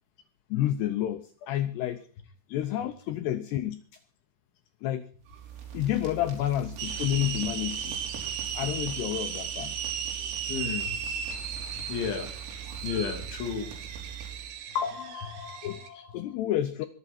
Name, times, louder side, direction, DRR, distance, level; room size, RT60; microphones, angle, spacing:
voice 1, 0.5-2.0 2.5-3.8 4.8-5.1 5.7-8.0 8.5-9.8 10.2-10.3 15.6-15.8 16.1-16.9, left 12 dB, 90° left, 12 dB, 2.3 m, -29 dB
sound 1, 5.2-14.6, right 7 dB, 80° right, 6.4 m, -42 dB
sound 2, 6.8-15.9, right 7 dB, 60° right, 3.5 m, -36 dB
voice 2, 10.5-11.0 11.7-12.3 12.8-13.7 14.8-16.1, left 7 dB, 65° left, 4 dB, 4.9 m, -33 dB
24.0 x 11.5 x 4.4 m, 0.41 s
omnidirectional pair, 5.9 m